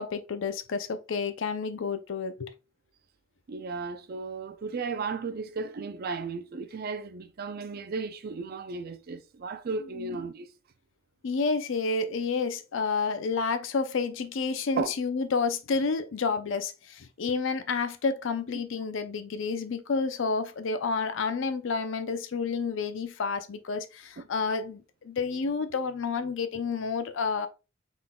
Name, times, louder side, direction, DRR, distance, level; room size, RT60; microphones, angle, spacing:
voice 1, 0.0-2.5 10.0-10.2 11.2-27.5, left 4 dB, 65° left, 0.5 m, -30 dB
voice 2, 3.5-10.5 14.8-14.9 18.5-18.6, right 4 dB, 50° right, 0.4 m, -35 dB
3.7 x 3.6 x 2.2 m
head